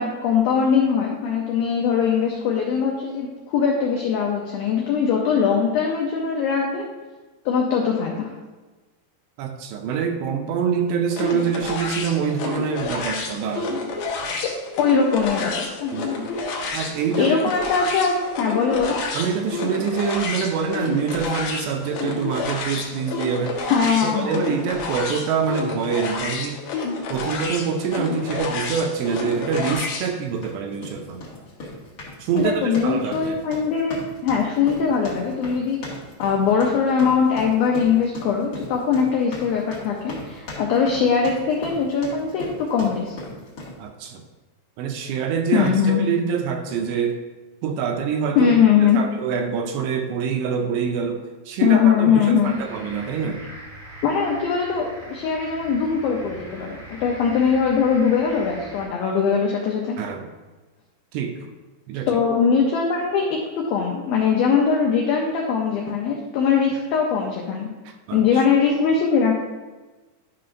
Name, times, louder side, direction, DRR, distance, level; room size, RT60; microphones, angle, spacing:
voice 1, 0.0-6.8 7.5-8.3 14.8-15.9 17.2-19.0 23.6-24.4 32.3-43.1 45.5-46.0 48.4-49.0 51.6-52.5 54.0-60.0 62.1-67.7 68.1-69.3, left 6 dB, 85° left, 0 dB, 2.0 m, -21 dB
voice 2, 9.4-13.7 15.9-16.3 16.7-17.4 19.1-23.7 24.0-26.6 27.1-31.3 32.2-33.4 43.8-44.2 44.8-47.2 47.6-48.5 48.8-53.4 60.0-60.3 61.1-61.5 61.9-62.1 67.9-68.2, right 6 dB, 80° right, 5 dB, 2.6 m, -25 dB
sound 1, 11.1-30.1, left 3 dB, 70° left, 2.1 m, -29 dB
sound 2, 28.6-28.8 29.3-29.5 30.3-43.8, left 2 dB, 50° left, 1.7 m, -38 dB
sound 3, 52.4-58.9, right 1 dB, 60° right, 0.4 m, -41 dB
11.5 x 5.7 x 2.6 m, 1.2 s
omnidirectional pair, 5.1 m